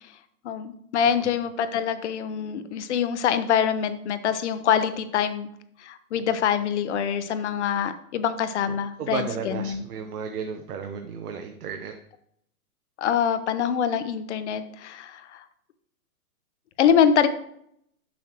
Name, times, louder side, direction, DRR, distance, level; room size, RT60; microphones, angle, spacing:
voice 1, 0.4-5.5 5.8-9.8 13.0-15.4 16.8-17.3, left 8 dB, 50° left, 11 dB, 0.7 m, -24 dB
voice 2, 8.6-11.9, right 6 dB, 75° right, 6 dB, 0.9 m, -34 dB
7.2 x 6.1 x 3.0 m, 0.72 s
hypercardioid pair, 150°, 45 cm